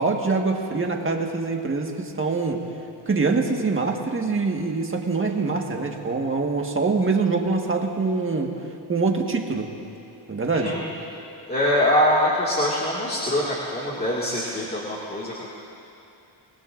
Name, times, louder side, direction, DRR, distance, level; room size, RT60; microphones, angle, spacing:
voice 1, 0.0-2.6 3.1-8.5 8.9-9.7 10.3-10.7, right 4 dB, 25° right, 1 dB, 1.6 m, -24 dB
voice 2, 10.5-10.8 11.5-15.5, left 1 dB, 20° left, -6 dB, 2.1 m, -23 dB
26.5 x 19.5 x 2.6 m, 2.7 s
cardioid pair, 115°, 45 cm